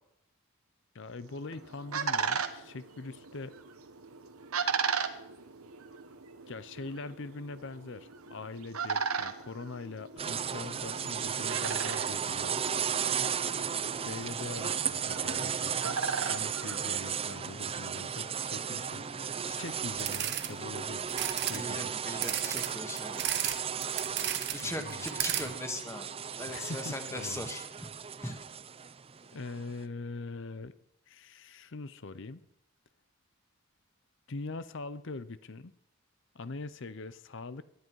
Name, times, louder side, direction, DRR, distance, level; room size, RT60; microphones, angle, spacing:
voice 1, 0.9-3.5 6.5-12.6 14.0-16.0 16.3-21.9 24.6-25.1 25.4-25.5 26.4-27.5 29.3-30.7 31.1-32.4 34.3-35.7 36.3-37.6, left 3 dB, 60° left, 15 dB, 0.7 m, -43 dB
sound 1, 1.3-17.5, right 5 dB, 80° right, 1.3 m, -37 dB
sound 2, 10.2-29.7, right 7 dB, 25° right, 0.5 m, -35 dB
sound 3, 20.0-20.5 21.1-21.6 22.2-23.5 23.8-24.6 24.9-25.4, right 11 dB, 50° right, 1.3 m, -33 dB
voice 2, 21.5-23.2 24.5-26.1 26.4-27.9 28.2-28.4, left 1 dB, 10° left, 5 dB, 1.8 m, -39 dB
19.5 x 12.5 x 4.7 m, 0.79 s
head